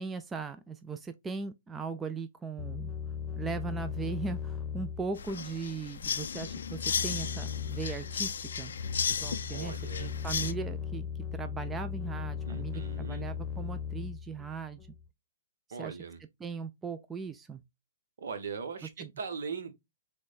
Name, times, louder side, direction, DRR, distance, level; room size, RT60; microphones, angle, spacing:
voice 1, 0.0-2.9 3.3-8.7 9.1-11.1 11.4-14.8 15.8-16.0 16.4-17.6 19.0-19.1, right 5 dB, 15° right, 0.3 m, -38 dB
sound 1, 2.6-15.1, left 7 dB, 20° left, 0.9 m, -38 dB
sound 2, 5.2-10.5, left 7 dB, 70° left, 0.4 m, -35 dB
voice 2, 9.5-10.1 12.4-13.3 15.7-16.2 18.2-19.8, right 5 dB, 70° right, 0.9 m, -40 dB
6.1 x 2.2 x 2.4 m
hypercardioid pair, 125°, 0 cm